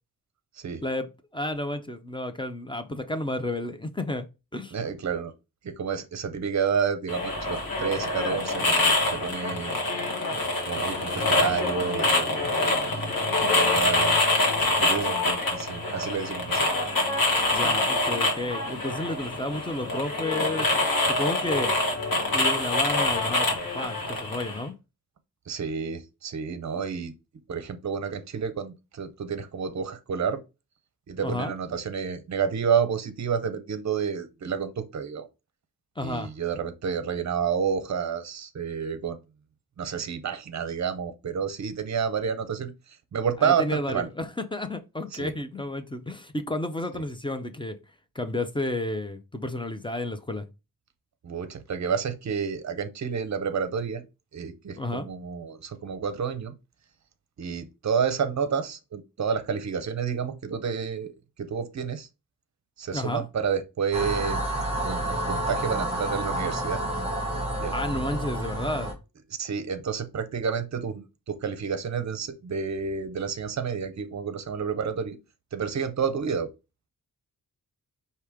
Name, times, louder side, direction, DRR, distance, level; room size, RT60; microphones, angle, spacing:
voice 1, 0.8-4.3 4.5-4.8 17.5-20.7 21.1-21.7 22.3-23.5 23.7-24.7 31.2-31.5 36.0-36.3 43.4-47.8 48.2-50.5 54.8-55.1 62.9-63.3 67.7-68.9, left 1 dB, 15° left, 0.4 m, -31 dB
voice 2, 4.7-5.3 5.6-9.8 10.7-12.8 13.4-14.2 14.6-16.7 17.6-17.8 25.5-27.1 27.5-30.4 31.1-35.3 36.0-39.2 39.8-44.1 45.1-45.3 46.9-47.0 51.2-54.0 54.3-56.5 57.4-61.1 61.4-62.1 62.8-64.4 64.8-66.8 67.6-67.7 69.4-75.2 75.5-76.5, right 6 dB, 45° right, 0.6 m, -30 dB
sound 1, 7.1-24.6, left 2 dB, 60° left, 1.4 m, -25 dB
sound 2, 63.9-68.9, right 1 dB, 15° right, 1.3 m, -29 dB
4.8 x 2.8 x 3.4 m
wide cardioid pair, 170°, 39 cm